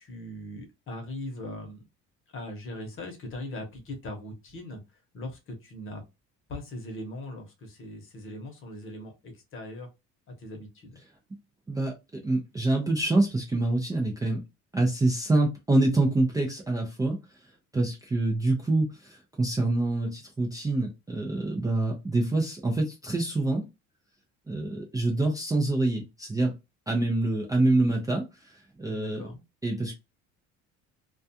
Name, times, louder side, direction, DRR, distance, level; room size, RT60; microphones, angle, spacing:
voice 1, 0.0-1.8 2.3-4.8 5.1-6.0 6.5-9.9 10.4-11.0 28.9-29.4, left 1 dB, 40° left, 3 dB, 0.9 m, -40 dB
voice 2, 11.7-14.4 14.7-23.6 24.5-26.5 26.9-29.3 29.6-29.9, right 2 dB, 10° right, -1 dB, 0.4 m, -26 dB
2.3 x 2.3 x 2.7 m, 0.24 s
cardioid pair, 135°, 32 cm